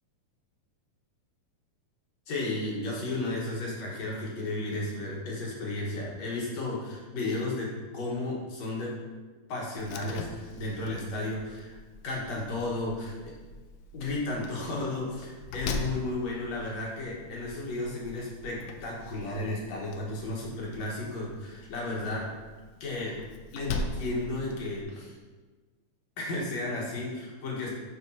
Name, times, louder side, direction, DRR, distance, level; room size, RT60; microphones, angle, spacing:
voice 1, 2.3-8.9 9.5-11.8 12.0-13.3 13.9-22.3 22.8-23.2 23.5-25.1 26.2-27.7, left 2 dB, 55° left, -4 dB, 2.4 m, -33 dB
Slam, 9.8-24.8, left 3 dB, 80° left, 2.2 m, -42 dB
12.0 x 5.1 x 2.8 m, 1.4 s
omnidirectional pair, 4.2 m